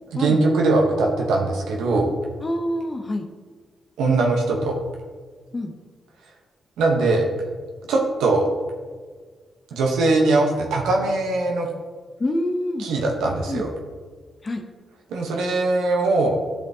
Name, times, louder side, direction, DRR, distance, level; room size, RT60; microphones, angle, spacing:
voice 1, 0.1-2.1 4.0-4.8 6.8-7.3 7.9-8.5 9.7-11.7 12.8-13.7 15.1-16.4, right 3 dB, 90° right, 0 dB, 1.0 m, -21 dB
voice 2, 2.4-3.2 5.5-5.7 12.2-12.9 13.5-13.6 14.4-14.6, left 1 dB, 35° left, 4 dB, 0.8 m, -26 dB
11.0 x 5.1 x 2.8 m, 1.5 s
supercardioid pair, 55°, 0 cm